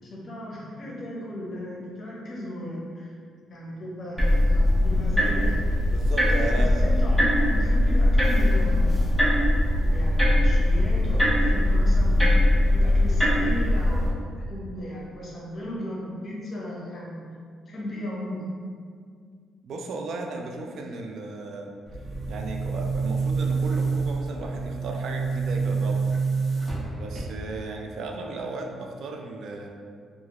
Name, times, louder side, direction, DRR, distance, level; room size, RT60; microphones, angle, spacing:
voice 1, 0.0-3.1 3.5-5.6 6.6-9.2 9.8-12.1 12.7-14.2 14.5-17.2 17.7-18.5, left 1 dB, 45° left, -4 dB, 0.7 m, -36 dB
sound 1, 4.2-14.1, left 1 dB, 5° right, 0.7 m, -21 dB
voice 2, 5.9-6.7 19.6-21.7 22.3-26.1 27.0-29.7, right 2 dB, 70° right, 2 dB, 0.4 m, -35 dB
Boom, 21.9-27.7, right 4 dB, 45° right, 1.1 m, -28 dB
2.8 x 2.5 x 2.9 m, 2.1 s
cardioid pair, 90°, 0 cm